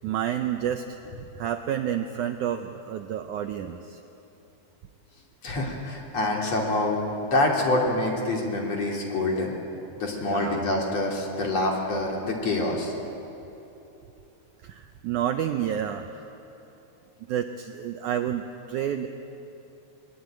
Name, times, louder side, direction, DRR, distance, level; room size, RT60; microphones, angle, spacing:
voice 1, 0.0-4.0 10.2-10.6 14.6-16.2 17.3-18.4 18.7-19.1, right 10 dB, 85° right, 6 dB, 1.7 m, -29 dB
voice 2, 5.4-9.5 10.0-12.9, left 2 dB, 45° left, -1 dB, 3.8 m, -26 dB
23.0 x 21.0 x 8.9 m, 3.0 s
omnidirectional pair, 4.5 m